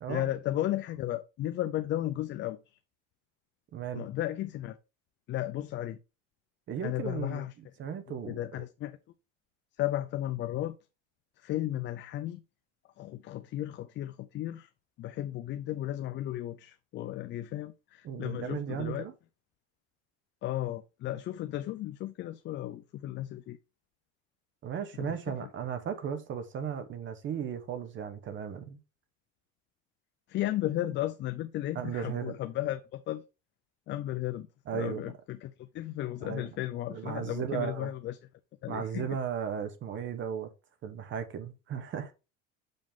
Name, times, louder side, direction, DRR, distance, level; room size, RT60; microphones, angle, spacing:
voice 1, 0.1-2.6 3.9-4.8 5.3-6.0 6.8-7.5 8.2-9.0 9.8-10.7 11.4-12.4 13.0-14.7 15.0-19.1 20.4-23.6 25.0-25.5 30.3-33.2 33.9-34.5 34.7-38.2 38.6-39.1, left 14 dB, 35° left, 0.4 m, -34 dB
voice 2, 3.7-4.0 6.7-7.4 7.8-8.4 18.0-19.1 24.6-28.8 31.7-32.3 34.7-35.1 36.2-36.5 36.9-37.9 38.7-40.5 40.8-42.1, right 8 dB, 35° right, 1.0 m, -35 dB
6.5 x 5.3 x 3.7 m
cardioid pair, 140°, 32 cm